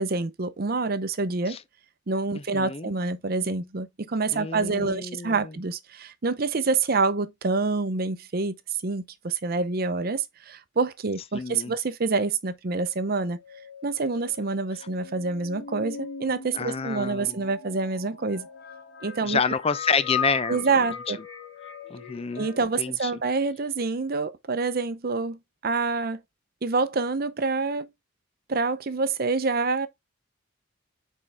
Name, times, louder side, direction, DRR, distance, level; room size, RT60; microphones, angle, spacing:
voice 1, 0.0-1.6 2.1-8.6 8.8-13.4 13.8-18.5 19.0-19.4 20.5-21.2 22.4-26.2 26.6-27.9 28.5-29.9, right 3 dB, 50° right, 0.7 m, -27 dB
voice 2, 2.5-2.9 4.3-5.5 11.3-11.7 16.6-17.4 19.2-20.6 21.9-22.5 22.8-23.1, left 5 dB, 30° left, 0.5 m, -28 dB
sound 1, 13.0-22.6, left 6 dB, 85° left, 2.5 m, -39 dB
6.6 x 4.6 x 3.4 m
head